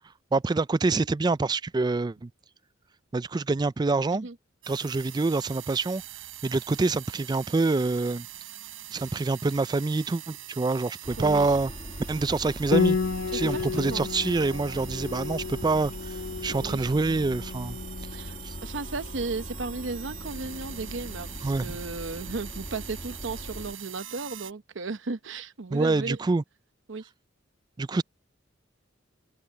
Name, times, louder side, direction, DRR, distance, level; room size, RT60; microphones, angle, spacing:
voice 1, 0.3-2.3 3.1-4.3 4.7-6.0 6.4-8.3 8.9-11.7 12.1-13.0 13.3-17.8 18.4-18.5 21.4-21.7 25.7-26.4 27.8-28.0, right 3 dB, 20° right, 0.3 m, -26 dB
sound 1, 4.6-24.5, right 13 dB, 85° right, 5.4 m, -44 dB
sound 2, 11.0-23.7, left 1 dB, 30° left, 1.5 m, -41 dB
voice 2, 11.2-11.6 13.3-14.1 16.6-16.9 18.1-18.4 18.6-26.2 26.9-27.1, right 3 dB, 70° right, 0.9 m, -35 dB
Piano, 12.7-22.0, left 5 dB, 80° left, 0.9 m, -33 dB
head